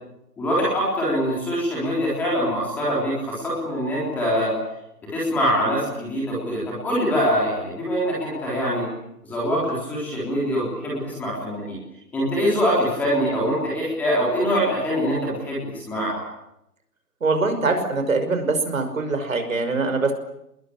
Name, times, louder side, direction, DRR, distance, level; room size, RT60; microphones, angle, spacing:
voice 1, 0.4-4.5 5.1-8.9 9.2-11.8 12.1-16.2, equal, 5° left, -5 dB, 3.7 m, -24 dB
voice 2, 17.2-20.1, right 3 dB, 55° right, 7 dB, 5.7 m, -23 dB
28.5 x 21.5 x 8.7 m, 0.83 s
hypercardioid pair, 175°, 48 cm